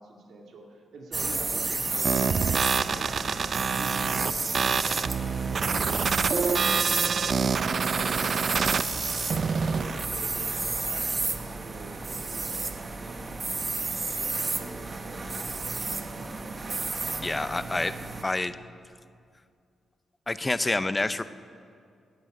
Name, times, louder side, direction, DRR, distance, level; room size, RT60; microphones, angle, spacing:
voice 1, 0.0-5.6 6.1-9.3 9.7-12.2 12.5-16.3, right 2 dB, 75° right, 1 dB, 2.2 m, -47 dB
sound 1, 1.1-18.2, right 3 dB, 35° right, 1.0 m, -32 dB
sound 2, 2.0-10.0, right 5 dB, 50° right, 0.4 m, -27 dB
voice 2, 17.2-17.9 18.2-18.6 20.3-21.2, left 2 dB, 20° left, 14 dB, 0.5 m, -27 dB
12.0 x 8.7 x 9.1 m, 2.3 s
cardioid pair, 95°, 0 cm